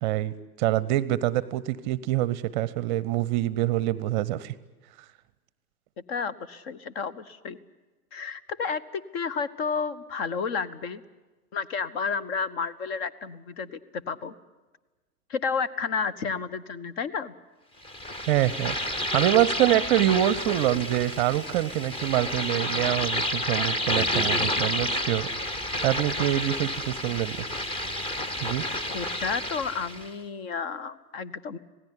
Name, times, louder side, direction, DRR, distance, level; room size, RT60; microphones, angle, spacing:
voice 1, 0.0-4.5 18.2-25.3 25.8-27.4 28.4-28.7, right 14 dB, 30° right, 20 dB, 0.7 m, -25 dB
voice 2, 6.1-7.6 8.1-11.0 11.5-14.3 15.3-17.3 28.9-31.6, left 5 dB, 40° left, 18 dB, 1.2 m, -31 dB
sound 1, 17.8-30.1, left 1 dB, 10° left, 1.0 m, -30 dB
26.5 x 17.5 x 9.8 m, 1.2 s
figure-of-eight pair, 100°, 45 cm